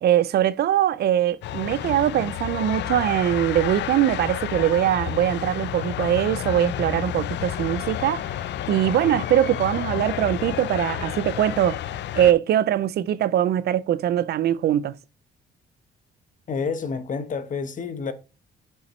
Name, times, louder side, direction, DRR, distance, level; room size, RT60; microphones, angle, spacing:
voice 1, 0.0-8.2 8.7-11.8 12.1-14.9, right 11 dB, 55° right, 0.4 m, -22 dB
sound 1, 1.4-12.3, left 11 dB, 65° left, 0.5 m, -30 dB
voice 2, 16.5-18.1, left 5 dB, 40° left, 0.9 m, -29 dB
6.7 x 5.6 x 3.1 m
cardioid pair, 100°, 20 cm